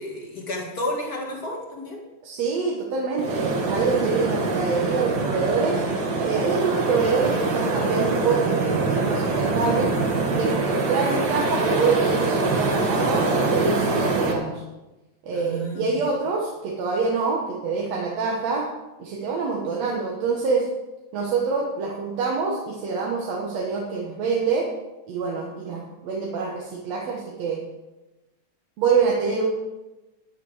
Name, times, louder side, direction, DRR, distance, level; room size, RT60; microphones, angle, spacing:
voice 1, 0.0-2.0 6.7-6.8 15.3-16.0, left 1 dB, 35° left, -1 dB, 2.2 m, -31 dB
voice 2, 2.2-5.8 6.2-9.9 10.4-14.6 15.2-18.7 19.0-20.7 21.1-24.7 25.1-27.6 28.8-29.4, right 4 dB, 65° right, -2 dB, 2.4 m, -25 dB
sound 1, 3.2-14.3, right 3 dB, 50° right, 1.6 m, -24 dB
11.0 x 10.5 x 4.9 m, 1.0 s
omnidirectional pair, 3.4 m